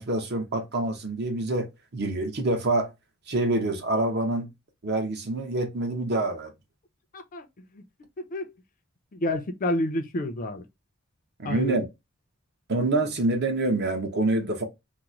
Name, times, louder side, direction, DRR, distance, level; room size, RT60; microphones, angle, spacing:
voice 1, 0.0-1.7 1.9-2.9 3.3-4.5 4.8-6.5 11.4-11.9 12.7-14.6, right 2 dB, 55° right, 0.8 m, -26 dB
voice 2, 7.1-7.5 7.8-7.9 8.3-8.5 9.1-10.6 11.4-11.8, left 1 dB, 40° left, 0.5 m, -29 dB
2.9 x 2.0 x 3.6 m
head